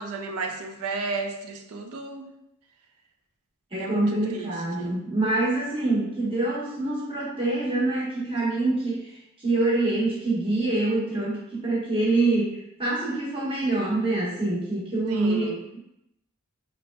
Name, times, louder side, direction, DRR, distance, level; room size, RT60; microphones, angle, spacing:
voice 1, 0.0-2.3 3.8-5.0 15.1-15.6, right 4 dB, 90° right, 4 dB, 0.4 m, -33 dB
voice 2, 3.7-15.5 15.7-15.8, right 2 dB, 25° right, -7 dB, 1.0 m, -25 dB
3.8 x 3.2 x 2.2 m, 0.81 s
head